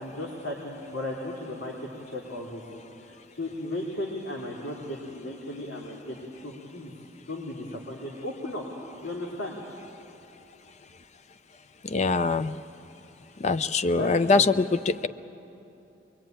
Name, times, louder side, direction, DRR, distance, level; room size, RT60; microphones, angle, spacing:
voice 1, 0.0-6.9 7.3-8.6 9.0-9.6 13.9-14.4, left 1 dB, 85° left, -2 dB, 2.9 m, -36 dB
voice 2, 11.9-12.6 13.4-15.1, left 3 dB, 35° left, 13 dB, 0.5 m, -23 dB
23.0 x 22.5 x 9.0 m, 2.9 s
head